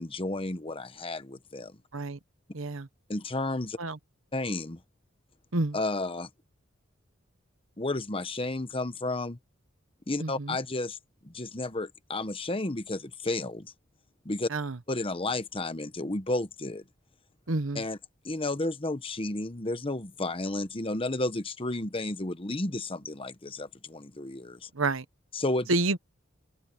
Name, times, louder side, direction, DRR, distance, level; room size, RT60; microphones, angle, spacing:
voice 1, 0.0-1.7 3.1-3.8 4.3-4.8 5.7-6.3 7.8-9.4 10.1-11.0 11.2-13.7 14.2-14.5 14.9-16.8 17.7-18.0 18.2-24.7 25.3-25.7, left 2 dB, 25° left, 1.0 m, -32 dB
voice 2, 2.5-2.9 3.8-4.0 5.5-5.8 10.2-10.6 14.5-14.8 17.5-17.8 24.7-25.0 25.7-26.0, right 2 dB, 80° right, 1.2 m, -29 dB
open air
head